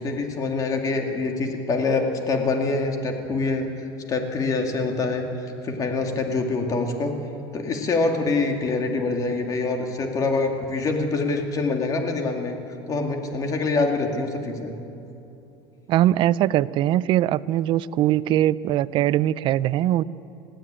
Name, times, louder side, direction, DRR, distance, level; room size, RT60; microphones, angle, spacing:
voice 1, 0.0-3.7 4.1-5.3 5.6-7.1 7.5-12.6 12.9-14.8, left 3 dB, 30° left, 4 dB, 2.3 m, -25 dB
voice 2, 15.9-20.0, right 13 dB, 45° right, 18 dB, 0.5 m, -21 dB
20.0 x 15.5 x 8.9 m, 2.9 s
supercardioid pair, 140°, 12 cm